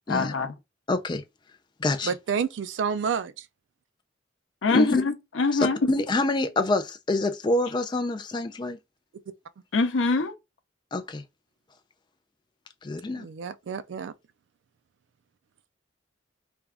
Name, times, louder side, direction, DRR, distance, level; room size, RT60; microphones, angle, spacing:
voice 1, 0.1-0.5 4.6-5.8 9.7-10.3, left 3 dB, 80° left, 0.6 m, -24 dB
voice 2, 0.9-1.2 1.8-2.1 4.7-5.0 5.5-8.8 10.9-11.2 12.8-13.3, left 2 dB, 25° left, 0.3 m, -26 dB
voice 3, 2.0-3.4 13.1-14.1, right 6 dB, 70° right, 0.3 m, -29 dB
3.3 x 2.3 x 3.5 m
head